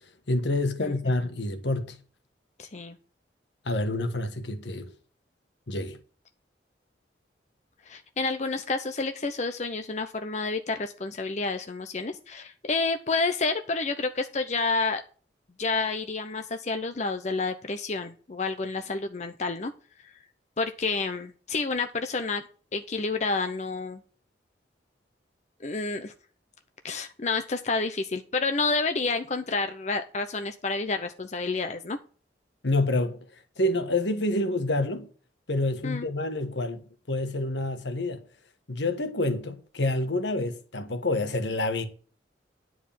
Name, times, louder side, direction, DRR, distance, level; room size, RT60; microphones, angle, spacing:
voice 1, 0.3-2.0 3.6-4.9 5.7-6.0 32.6-33.2 33.6-35.1 35.5-38.2 38.7-41.9, left 2 dB, 75° left, 1.4 m, -28 dB
voice 2, 0.8-1.1 2.6-3.0 7.9-15.0 15.6-19.7 20.0-20.1 20.6-22.4 22.7-24.0 25.6-26.1 26.8-32.0 35.8-36.1, left 3 dB, 40° left, 0.7 m, -29 dB
10.5 x 4.8 x 7.2 m
head